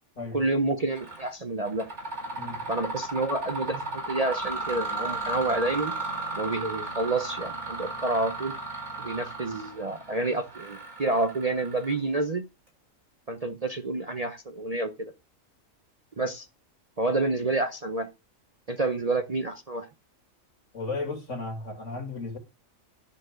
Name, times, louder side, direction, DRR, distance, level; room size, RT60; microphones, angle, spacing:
voice 1, 0.3-1.9 2.7-6.0 6.3-8.5 9.0-12.4 13.3-15.1 16.2-16.5 17.0-18.1 18.7-19.9, right 2 dB, 35° right, 0.7 m, -28 dB
Mechanisms, 1.0-1.3 1.7-12.2, right 2 dB, 55° right, 6.0 m, -35 dB
voice 2, 20.7-22.4, left 3 dB, 65° left, 2.5 m, -34 dB
11.0 x 4.6 x 6.3 m
omnidirectional pair, 1.4 m